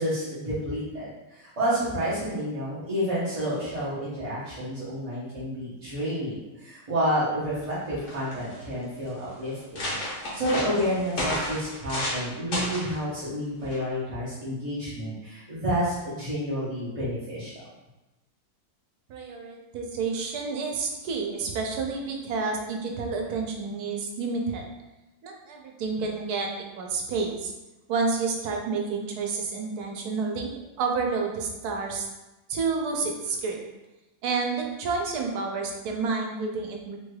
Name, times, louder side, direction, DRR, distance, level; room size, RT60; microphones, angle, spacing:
voice 1, 0.0-9.9 10.3-17.5, equal, 30° right, -11 dB, 0.6 m, -30 dB
sound 1, 7.7-7.8 8.0-8.6 9.2-9.3 9.5-12.2 12.5-12.9 13.7-14.0, left 1 dB, 60° left, 1.2 m, -31 dB
voice 2, 19.1-24.6 25.2-26.5 26.8-27.5 27.9-30.5 30.8-32.1 32.5-33.6 34.2-37.0, right 4 dB, 80° right, 2 dB, 1.1 m, -29 dB
3.3 x 3.2 x 2.2 m, 1.0 s
omnidirectional pair, 1.6 m